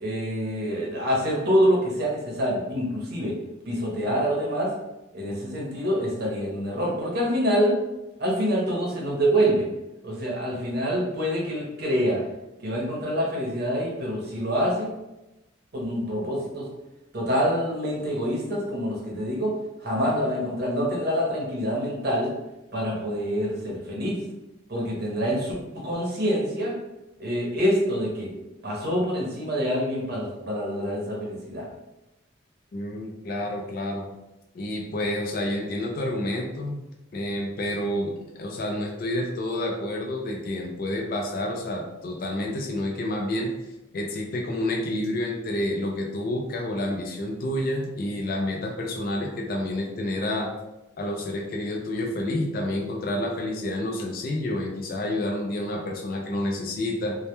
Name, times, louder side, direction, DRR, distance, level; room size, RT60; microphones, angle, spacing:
voice 1, 0.0-3.3 3.7-4.7 5.1-7.7 8.2-9.7 10.0-12.2 12.6-14.9 15.7-16.7 17.1-19.5 19.8-22.3 22.7-24.2 24.7-26.7 27.2-28.3 28.6-31.6, equal, 50° right, -3 dB, 0.7 m, -26 dB
voice 2, 32.7-34.1 34.5-36.8 37.1-43.5 43.9-50.5 51.0-57.2, left 1 dB, 45° left, 1 dB, 0.3 m, -29 dB
2.1 x 2.1 x 2.9 m, 0.97 s
head